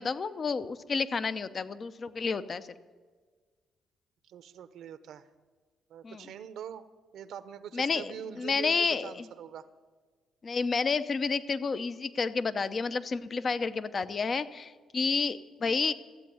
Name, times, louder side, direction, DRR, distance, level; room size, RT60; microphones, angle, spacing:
voice 1, 0.0-2.7 6.0-6.3 7.7-9.3 10.4-15.9, left 4 dB, 40° left, 13 dB, 0.7 m, -30 dB
voice 2, 4.2-5.2 5.9-6.9 7.1-9.7, right 8 dB, 75° right, 12 dB, 0.8 m, -43 dB
14.5 x 8.3 x 9.3 m, 1.5 s
cardioid pair, 90°, 0 cm